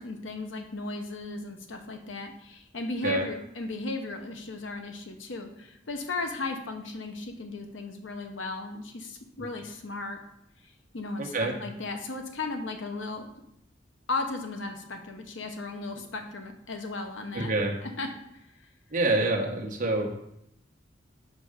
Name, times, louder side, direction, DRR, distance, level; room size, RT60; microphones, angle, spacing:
voice 1, 0.0-10.2 10.9-13.4 14.1-17.5 17.8-18.1, left 3 dB, 85° left, 5 dB, 0.9 m, -35 dB
voice 2, 11.2-11.5 17.3-17.7 18.9-20.1, right 2 dB, 45° right, 1 dB, 1.1 m, -26 dB
5.6 x 5.1 x 5.0 m, 0.80 s
head